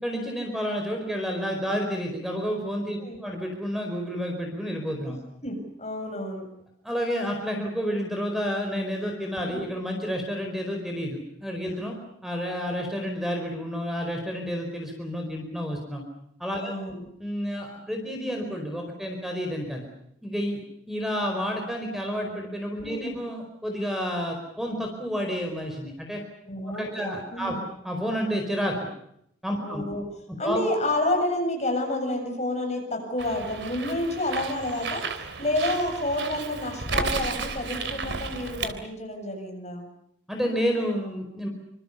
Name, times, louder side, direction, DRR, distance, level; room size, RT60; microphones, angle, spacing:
voice 1, 0.0-5.2 6.8-11.9 12.2-16.0 16.4-16.7 17.2-19.9 20.2-20.6 20.9-26.2 26.7-27.6 27.8-28.8 29.4-29.8 30.4-30.6 40.3-41.5, equal, ahead, 2 dB, 4.6 m, -30 dB
voice 2, 5.4-6.4 9.4-9.7 16.6-17.0 22.8-23.2 26.5-27.6 29.6-30.0 30.4-35.0 35.4-39.9, left 1 dB, 35° left, 3 dB, 7.5 m, -29 dB
Bird, 33.2-38.7, right 4 dB, 60° right, 3.2 m, -33 dB
26.5 x 26.5 x 7.1 m, 0.74 s
head